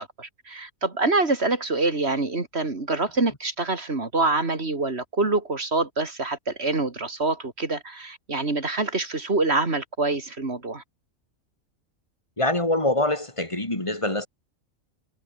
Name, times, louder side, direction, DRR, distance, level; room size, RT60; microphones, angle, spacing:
voice 1, 0.0-10.8, right 3 dB, 50° right, 3.2 m, -26 dB
voice 2, 12.4-14.3, left 1 dB, 20° left, 3.3 m, -24 dB
omnidirectional pair, 1.4 m